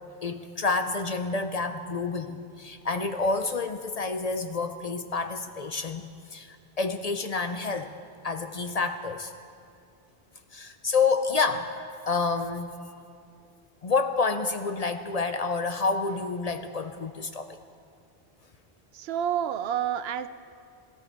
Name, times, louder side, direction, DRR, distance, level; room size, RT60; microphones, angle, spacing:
voice 1, 0.2-7.9 8.2-9.3 10.5-11.7 12.1-12.7 13.8-17.6, left 4 dB, 45° left, 8 dB, 0.6 m, -28 dB
voice 2, 18.9-20.3, right 9 dB, 80° right, 12 dB, 0.8 m, -29 dB
18.0 x 16.0 x 3.5 m, 2.3 s
omnidirectional pair, 1.0 m